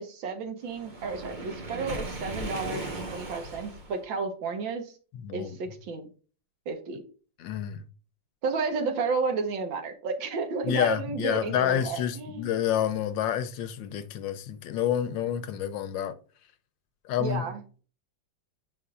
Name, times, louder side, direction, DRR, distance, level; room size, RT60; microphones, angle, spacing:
voice 1, 0.0-5.0 5.3-6.1 6.7-7.0 8.4-12.5 17.2-17.8, right 4 dB, 85° right, 1.9 m, -32 dB
Waves surf, 0.7-4.0, right 1 dB, 30° right, 0.9 m, -37 dB
voice 2, 5.1-5.6 7.4-7.8 10.6-16.2 17.0-17.5, left 10 dB, 80° left, 1.4 m, -29 dB
8.1 x 5.5 x 2.4 m
omnidirectional pair, 2.0 m